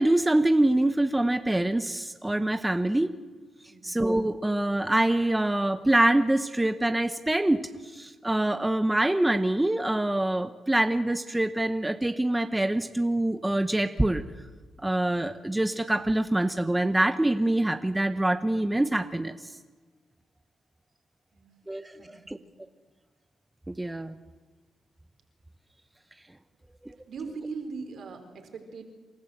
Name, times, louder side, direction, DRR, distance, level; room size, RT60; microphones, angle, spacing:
voice 1, 0.0-3.2 3.8-14.2 14.8-19.5 21.7-22.4 23.7-24.2 26.8-26.9, right 1 dB, 10° right, 9 dB, 0.9 m, -25 dB
voice 2, 22.0-22.4 27.1-28.8, right 4 dB, 65° right, 6 dB, 3.7 m, -39 dB
27.5 x 13.5 x 7.8 m, 1.4 s
cardioid pair, 70°, 0 cm